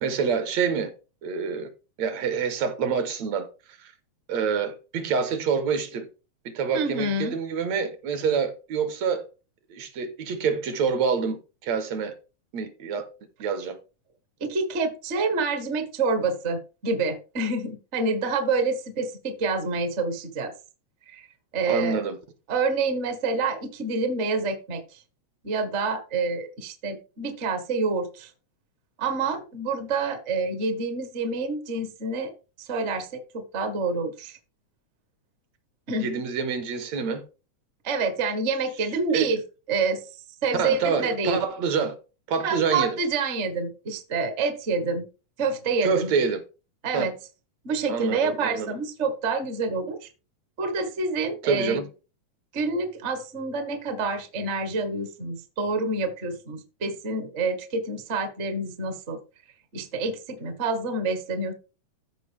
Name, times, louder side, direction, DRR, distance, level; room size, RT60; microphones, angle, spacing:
voice 1, 0.0-0.9 1.2-1.7 2.0-3.5 3.8-3.9 4.3-6.1 6.5-9.3 9.7-12.2 12.5-13.1 13.4-13.8 21.7-22.2 36.0-37.2 39.1-39.3 40.6-42.0 42.3-43.0 45.8-46.4 46.9-47.1 47.9-48.7 51.4-51.9, right 5 dB, 70° right, 2.2 m, -27 dB
voice 2, 6.7-7.3 14.4-20.5 21.1-21.3 21.5-22.0 22.5-25.0 25.4-28.3 29.0-32.3 32.6-34.4 35.9-36.1 37.8-39.4 39.7-40.0 40.4-41.4 42.4-45.1 45.4-46.1 46.8-47.1 47.6-50.1 50.6-51.8 52.5-59.2 59.7-61.5, right 3 dB, 50° right, 0.8 m, -27 dB
14.5 x 5.0 x 3.4 m
omnidirectional pair, 3.5 m